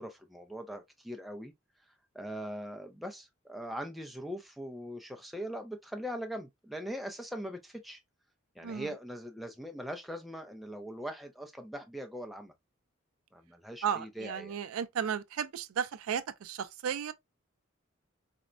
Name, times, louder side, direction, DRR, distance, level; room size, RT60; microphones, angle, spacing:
voice 1, 0.0-1.5 2.1-8.0 8.6-12.5 13.3-14.6, equal, ahead, 0.4 m, -41 dB
voice 2, 8.6-8.9 13.8-17.1, right 8 dB, 80° right, 0.4 m, -34 dB
4.3 x 2.1 x 2.4 m
head